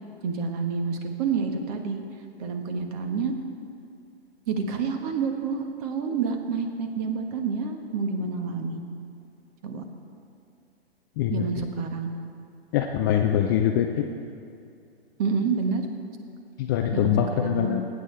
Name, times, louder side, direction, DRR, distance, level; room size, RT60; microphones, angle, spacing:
voice 1, 0.2-2.0 2.4-3.3 4.5-8.8 9.6-9.8 11.3-12.1 15.2-15.9 16.9-17.8, right 5 dB, 35° right, 5 dB, 1.4 m, -28 dB
voice 2, 11.2-11.6 12.7-14.1 16.6-17.8, left 9 dB, 20° left, 4 dB, 0.4 m, -24 dB
22.0 x 9.5 x 3.4 m, 2.4 s
figure-of-eight pair, 120°, 32 cm